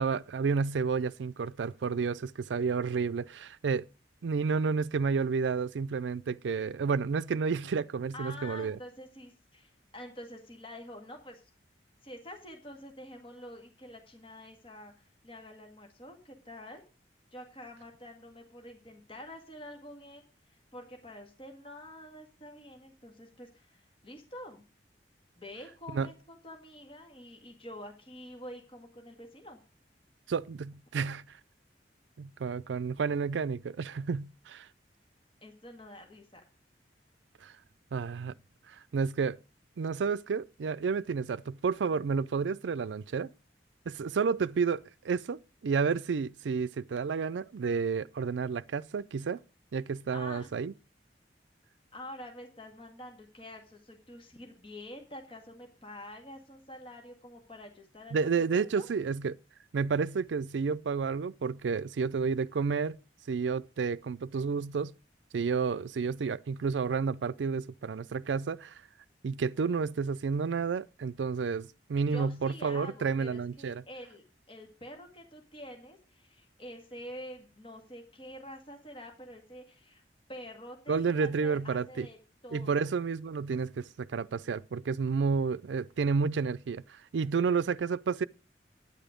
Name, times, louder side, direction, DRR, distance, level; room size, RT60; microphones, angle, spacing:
voice 1, 0.0-3.9 4.2-8.8 25.9-26.1 30.3-31.4 32.2-34.7 37.4-37.5 37.9-38.3 38.7-39.4 39.8-43.3 43.9-49.4 49.7-50.7 58.1-59.3 59.7-63.0 63.3-64.9 65.3-68.8 69.2-73.8 80.9-82.1 82.5-88.3, right 5 dB, 90° right, 0.4 m, -31 dB
voice 2, 8.1-11.4 12.0-14.9 15.2-16.8 17.3-20.2 20.5-24.7 25.4-29.6 35.4-36.4 50.1-50.5 51.9-58.2 58.5-58.9 72.1-80.0 80.3-82.2 82.4-82.9, left 1 dB, 30° left, 1.9 m, -47 dB
9.8 x 9.1 x 5.0 m
head